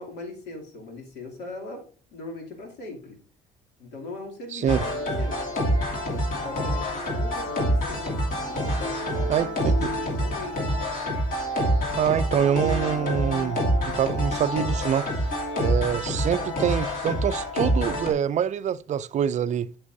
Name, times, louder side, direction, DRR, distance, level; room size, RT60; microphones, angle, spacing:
voice 1, 0.0-1.8 2.1-3.2 3.8-5.6 6.1-8.1 8.5-10.9, left 2 dB, 80° left, 2.7 m, -40 dB
voice 2, 4.5-4.8 9.3-9.9 11.9-15.1 15.6-19.7, right 9 dB, 45° right, 0.4 m, -25 dB
sound 1, 4.7-18.1, equal, 55° left, 2.7 m, -26 dB
8.3 x 7.2 x 2.7 m
cardioid pair, 110°, 17 cm